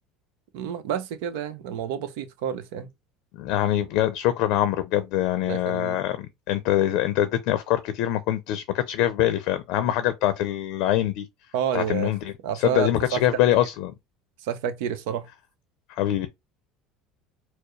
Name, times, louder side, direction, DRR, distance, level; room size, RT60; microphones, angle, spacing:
voice 1, 0.5-2.9 5.4-6.0 11.5-12.1 12.4-13.2 14.4-15.3, right 8 dB, 75° right, 0.8 m, -29 dB
voice 2, 3.4-11.3 11.7-13.9 16.0-16.3, left 13 dB, 70° left, 0.5 m, -24 dB
4.4 x 2.0 x 3.2 m
supercardioid pair, 95°, 0 cm